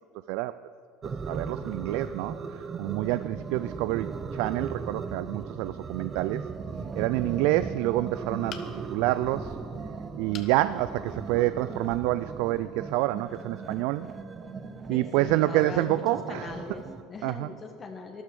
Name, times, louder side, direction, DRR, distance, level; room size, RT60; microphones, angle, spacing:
sound 1, 1.0-17.0, right 5 dB, 30° right, 1.0 m, -38 dB
voice 1, 1.3-2.4 2.8-6.4 6.9-9.6 10.2-14.1 14.9-16.5 17.2-17.5, right 16 dB, 70° right, 14 dB, 0.3 m, -27 dB
sound 2, 8.5-9.0 10.3-10.6 11.1-11.2 11.6-11.7, left 7 dB, 45° left, 1.3 m, -43 dB
voice 2, 14.9-18.2, left 4 dB, 30° left, 3 dB, 1.5 m, -40 dB
13.0 x 11.5 x 6.8 m, 2.3 s
supercardioid pair, 90°, 0 cm